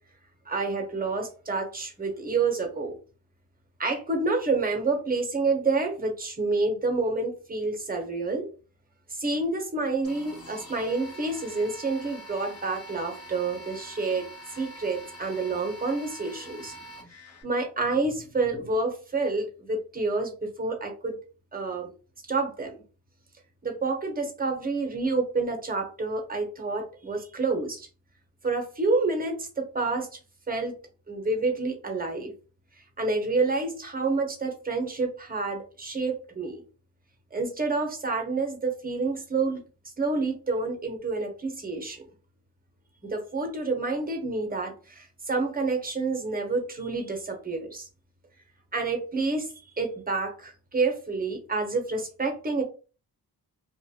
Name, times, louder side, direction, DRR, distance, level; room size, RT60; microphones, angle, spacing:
voice 1, 0.5-2.9 3.8-8.5 9.1-14.3 14.6-16.8 17.4-20.3 20.6-21.2 21.5-21.9 22.3-22.8 23.6-27.9 28.4-30.1 30.5-30.7 31.1-32.3 33.0-36.6 37.3-39.6 40.0-42.0 43.0-47.9 48.7-52.6, right 3 dB, 25° right, 3 dB, 0.9 m, -28 dB
sound 1, 10.0-17.4, right 1 dB, 40° left, 1.0 m, -45 dB
2.4 x 2.3 x 2.8 m, 0.35 s
cardioid pair, 65°, 39 cm